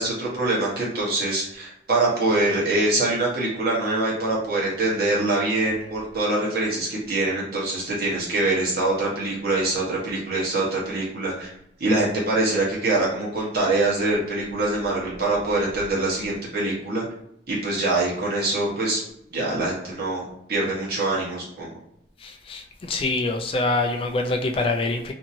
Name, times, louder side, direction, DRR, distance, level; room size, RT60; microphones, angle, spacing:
voice 1, 0.0-11.5 11.8-17.0 17.5-19.0 19.3-21.8, right 2 dB, 50° right, -5 dB, 1.0 m, -24 dB
voice 2, 22.2-25.1, left 2 dB, 30° left, 4 dB, 0.3 m, -25 dB
2.8 x 2.7 x 2.6 m, 0.78 s
head